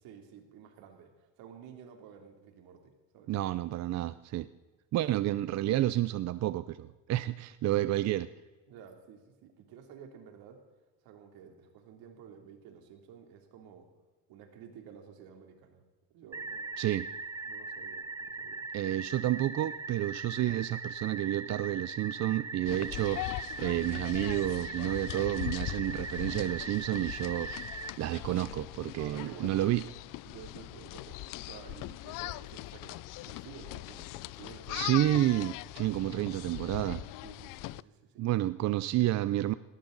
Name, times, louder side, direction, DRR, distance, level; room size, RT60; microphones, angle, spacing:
voice 1, 0.0-3.3 8.7-10.6 11.0-13.9 14.3-15.8 16.1-16.7 17.4-18.7 29.0-29.5 30.2-35.3 37.2-38.3, right 7 dB, 75° right, 4 dB, 3.2 m, -52 dB
voice 2, 3.3-4.5 4.9-8.3 16.8-17.1 18.7-29.8 34.7-37.0 38.2-39.5, right 14 dB, 50° right, 14 dB, 0.6 m, -30 dB
sound 1, 16.3-27.9, right 4 dB, 10° right, 0.7 m, -40 dB
sound 2, 22.7-37.8, left 19 dB, 60° left, 0.5 m, -41 dB
19.0 x 18.5 x 4.0 m, 1.3 s
cardioid pair, 120°, 36 cm